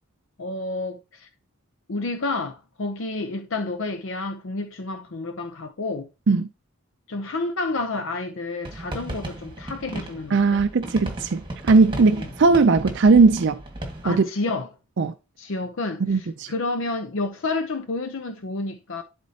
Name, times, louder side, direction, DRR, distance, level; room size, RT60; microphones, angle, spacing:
voice 1, 0.4-1.3 1.9-6.1 7.1-10.6 12.1-12.3 14.0-14.7 15.4-19.0, left 3 dB, 55° left, 0.6 m, -30 dB
sound 1, 8.6-14.2, right 1 dB, 20° right, 1.7 m, -35 dB
voice 2, 10.3-13.6 14.0-14.2 15.0-15.1 16.0-16.5, right 4 dB, 50° right, 0.4 m, -18 dB
11.5 x 4.2 x 2.8 m
head